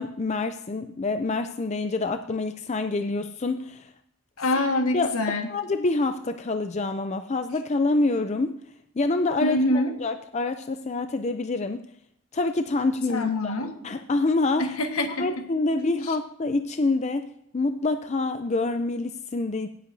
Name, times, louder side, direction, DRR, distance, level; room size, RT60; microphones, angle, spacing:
voice 1, 0.0-3.9 4.9-5.1 5.5-8.6 9.0-11.9 12.3-13.6 13.8-14.8 15.2-19.7, left 3 dB, 30° left, 8 dB, 0.4 m, -26 dB
voice 2, 4.4-5.5 9.4-10.0 13.1-13.8 14.6-15.3 15.7-15.8, left 1 dB, 75° left, 6 dB, 1.5 m, -25 dB
17.5 x 8.1 x 2.7 m, 0.75 s
head